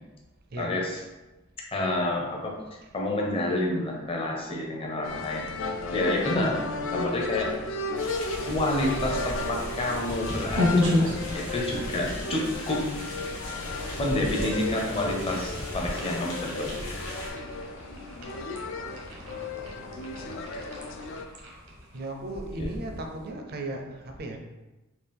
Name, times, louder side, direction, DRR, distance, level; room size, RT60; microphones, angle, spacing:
voice 1, 0.6-1.0 1.7-2.6 2.9-5.5 5.9-6.7 6.9-7.6 8.5-12.9 14.0-16.8 22.6-22.7, left 1 dB, 25° left, -1 dB, 0.6 m, -29 dB
sound 1, 5.0-21.2, left 3 dB, 65° left, 0.3 m, -35 dB
sound 2, 7.9-17.3, left 1 dB, 85° left, 1.2 m, -39 dB
sound 3, 8.8-23.3, left 1 dB, 80° right, 0.9 m, -33 dB
voice 2, 19.1-20.4 21.9-24.4, right 2 dB, 50° right, 3 dB, 0.5 m, -37 dB
3.9 x 2.4 x 3.4 m, 1.1 s
head